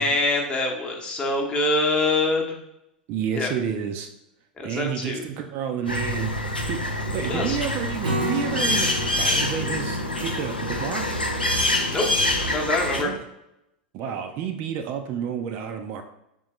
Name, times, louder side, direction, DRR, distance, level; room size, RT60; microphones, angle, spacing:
voice 1, 0.0-2.6 3.3-3.5 4.6-5.2 7.3-7.6 11.9-12.1 12.5-13.1, left 2 dB, 20° left, 1 dB, 0.8 m, -24 dB
voice 2, 3.1-4.1 4.6-6.8 7.1-11.2 13.0-13.2 13.9-16.0, right 8 dB, 40° right, 5 dB, 0.4 m, -30 dB
sound 1, 5.9-13.0, left 1 dB, 90° left, 0.5 m, -26 dB
Acoustic guitar / Strum, 8.0-11.4, equal, 70° right, 0.7 m, -32 dB
3.7 x 3.4 x 3.1 m, 0.86 s
figure-of-eight pair, 90°, 5 cm